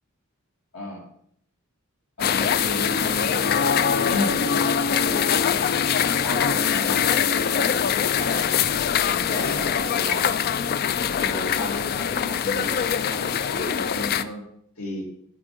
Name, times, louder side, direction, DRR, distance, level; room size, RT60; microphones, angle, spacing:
voice 1, 2.2-3.7 4.1-8.7 9.1-10.4 11.2-14.4 14.8-15.0, left 1 dB, 85° left, -1 dB, 2.0 m, -33 dB
sound 1, 2.2-14.2, left 8 dB, 45° left, 0.3 m, -23 dB
12.0 x 4.5 x 4.5 m, 0.67 s
head